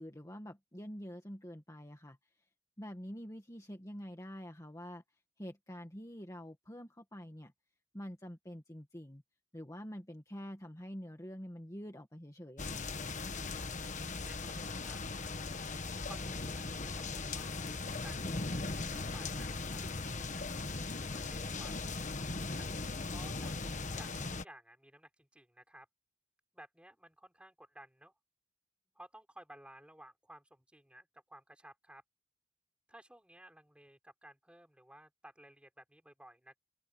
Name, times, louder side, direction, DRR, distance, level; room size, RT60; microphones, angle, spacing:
voice 1, 0.0-2.2 2.8-5.0 5.4-7.5 7.9-9.2 9.5-12.9, equal, 15° left, 2.0 m, -46 dB
sound 1, 12.6-24.4, left 3 dB, 40° left, 1.4 m, -39 dB
voice 2, 14.2-15.0 16.1-17.7 18.0-21.8 22.5-25.9 26.5-28.1 29.0-32.0 32.9-36.6, right 1 dB, 5° right, 5.2 m, -57 dB
head